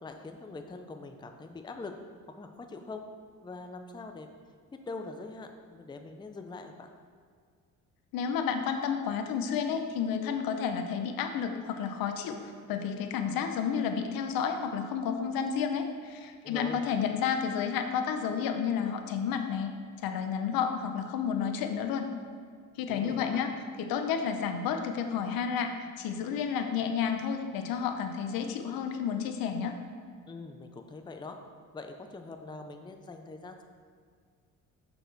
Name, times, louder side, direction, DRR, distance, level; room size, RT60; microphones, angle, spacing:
voice 1, 0.0-1.9 2.3-3.0 3.4-4.3 4.9-6.9 16.4-16.8 22.9-23.4 30.3-31.4 31.7-33.6, left 3 dB, 15° left, 5 dB, 0.5 m, -43 dB
voice 2, 8.1-12.4 12.7-19.7 20.0-22.1 22.8-23.5 23.8-25.7 26.0-29.7, left 7 dB, 90° left, 6 dB, 0.7 m, -31 dB
6.7 x 6.1 x 4.0 m, 2.1 s
cardioid pair, 95°, 34 cm